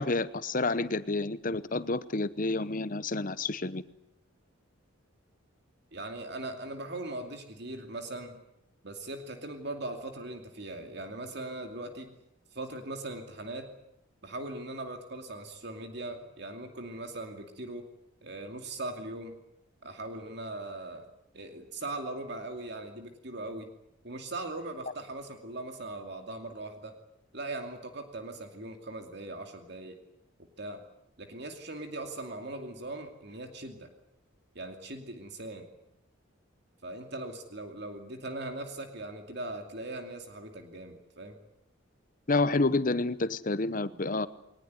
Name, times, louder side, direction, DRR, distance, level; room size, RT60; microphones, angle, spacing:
voice 1, 0.0-3.8 42.3-44.3, left 3 dB, 40° left, 15 dB, 0.9 m, -29 dB
voice 2, 5.9-8.4 8.8-12.2 12.5-13.7 14.2-17.8 18.2-19.4 19.8-21.1 21.3-23.7 24.0-26.9 27.3-30.0 30.6-30.8 31.2-33.9 34.5-35.7 36.8-41.4, right 2 dB, 55° right, 5 dB, 2.6 m, -40 dB
21.5 x 20.0 x 9.6 m, 0.82 s
head